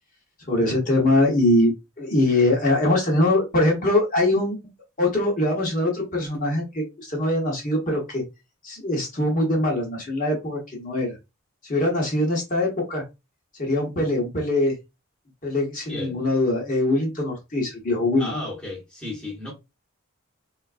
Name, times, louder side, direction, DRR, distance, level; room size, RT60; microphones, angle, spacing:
voice 1, 0.4-4.6 5.0-8.2 8.6-11.2 11.6-13.0 13.6-14.7 15.4-18.3, left 1 dB, 40° left, 1.0 m, -22 dB
voice 2, 18.2-19.5, left 2 dB, 5° left, 1.0 m, -33 dB
3.8 x 2.3 x 2.4 m
head